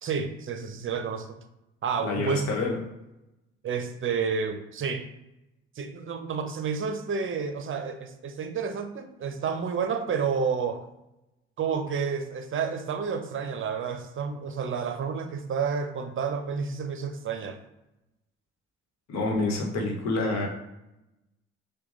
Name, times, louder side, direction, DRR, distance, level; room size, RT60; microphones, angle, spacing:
voice 1, 0.0-1.3 1.8-2.5 3.6-5.1 5.8-10.8 11.6-17.6, right 6 dB, 45° right, 8 dB, 0.7 m, -30 dB
voice 2, 2.0-2.8 19.1-20.5, left 2 dB, 65° left, 0 dB, 1.1 m, -27 dB
5.9 x 2.3 x 2.6 m, 0.94 s
hypercardioid pair, 50°, 30 cm